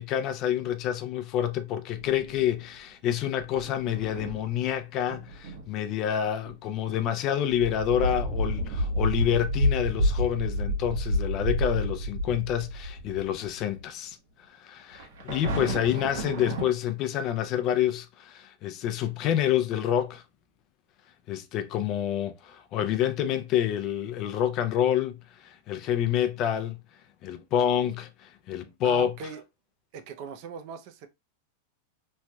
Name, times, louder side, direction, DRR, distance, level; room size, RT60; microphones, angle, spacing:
voice 1, 0.0-14.2 14.5-20.2 21.3-26.8 27.2-29.1, left 10 dB, 40° left, 0.4 m, -28 dB
sound 1, 2.0-2.6 3.4-4.7 5.1-5.7 6.2-6.5 6.9-7.1 7.4-13.5 13.7-13.8 14.9-16.7, equal, 70° right, 1.0 m, -30 dB
voice 2, 28.8-29.4 29.9-31.1, right 7 dB, 50° right, 0.5 m, -39 dB
3.1 x 2.6 x 2.3 m
supercardioid pair, 140°, 0 cm